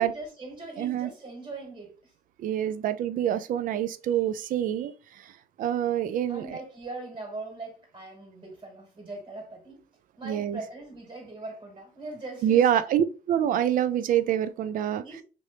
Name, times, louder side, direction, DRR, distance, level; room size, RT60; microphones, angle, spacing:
voice 1, 0.0-2.0 6.3-9.8 10.2-12.6 15.0-15.2, right 2 dB, 25° right, 1.8 m, -40 dB
voice 2, 0.8-1.1 2.4-5.3 5.6-6.6 10.2-10.6 12.4-15.2, right 10 dB, 55° right, 0.4 m, -26 dB
3.1 x 2.6 x 3.1 m
cardioid pair, 110°, 17 cm